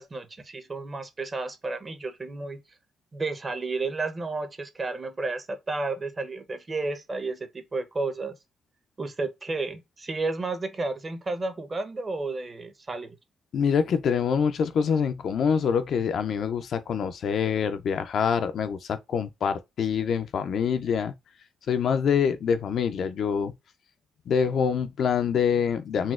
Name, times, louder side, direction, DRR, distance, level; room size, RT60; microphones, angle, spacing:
voice 1, 0.0-2.6 3.1-8.4 9.0-13.2, right 3 dB, 30° right, 0.7 m, -32 dB
voice 2, 13.5-21.1 21.7-23.5 24.3-26.1, left 7 dB, 60° left, 0.4 m, -25 dB
4.0 x 2.2 x 2.4 m
cardioid pair, 90°, 0 cm